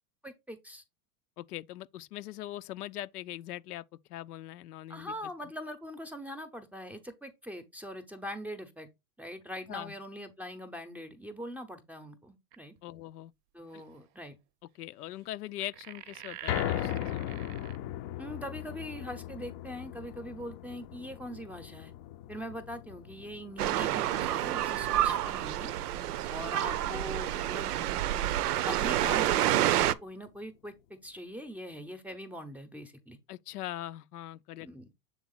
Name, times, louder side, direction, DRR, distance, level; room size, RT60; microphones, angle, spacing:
voice 1, 0.2-0.8 4.9-8.9 9.2-12.7 13.5-14.4 18.2-21.9 22.3-25.7 26.3-27.7 28.7-33.2 34.6-34.9, equal, 5° right, 0.7 m, -42 dB
voice 2, 1.4-3.8 4.1-5.2 9.7-9.9 12.8-13.3 13.7-13.8 14.7-17.4 33.3-34.7, left 14 dB, 80° left, 0.6 m, -41 dB
sound 1, 12.5-12.8 13.7-13.9 15.6-17.8, right 13 dB, 40° right, 0.6 m, -45 dB
sound 2, 16.5-28.7 29.1-29.2 29.7-29.8, left 12 dB, 35° left, 0.5 m, -39 dB
sound 3, 23.6-29.9, right 13 dB, 80° right, 0.6 m, -29 dB
7.3 x 3.5 x 3.9 m
hypercardioid pair, 125°, 45 cm